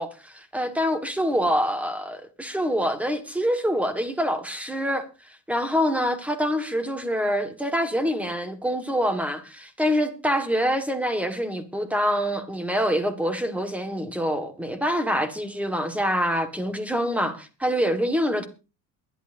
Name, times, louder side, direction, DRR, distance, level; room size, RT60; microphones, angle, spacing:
voice 1, 0.0-5.0 5.5-18.5, equal, 5° right, 1.6 m, -25 dB
22.5 x 11.5 x 2.7 m
cardioid pair, 155°, 35 cm